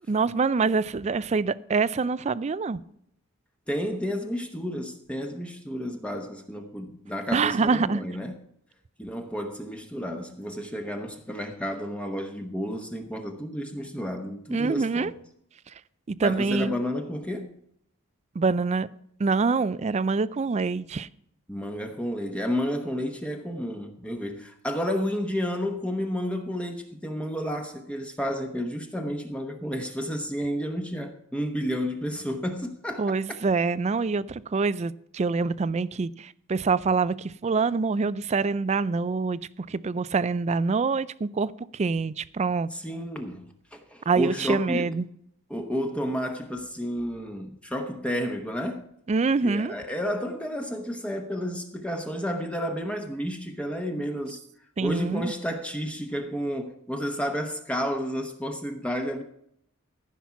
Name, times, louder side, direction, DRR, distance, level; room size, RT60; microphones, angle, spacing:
voice 1, 0.1-2.8 7.3-8.0 14.5-15.1 16.1-16.7 18.4-18.9 19.2-21.1 33.0-39.4 39.7-42.7 44.1-45.1 49.1-49.7 54.8-55.3, right 4 dB, 30° right, 0.3 m, -25 dB
voice 2, 3.7-8.3 9.0-15.1 16.2-17.5 21.5-33.2 42.7-44.9 45.5-48.9 49.4-54.4 54.8-59.2, equal, 5° left, 0.9 m, -31 dB
14.5 x 6.0 x 5.8 m
head